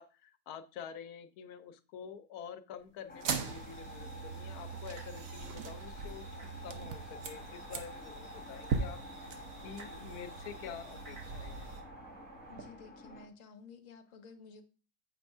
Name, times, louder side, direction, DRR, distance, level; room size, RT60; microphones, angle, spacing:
voice 1, 0.0-11.7, left 8 dB, 90° left, 10 dB, 1.2 m, -48 dB
sound 1, 3.1-13.3, left 2 dB, 5° left, 1.0 m, -51 dB
sound 2, 3.1-12.7, right 5 dB, 65° right, 1.2 m, -41 dB
sound 3, 3.4-11.8, right 5 dB, 90° right, 2.9 m, -48 dB
voice 2, 12.5-14.6, left 4 dB, 60° left, 9 dB, 1.3 m, -53 dB
7.8 x 3.4 x 5.3 m, 0.35 s
omnidirectional pair, 1.6 m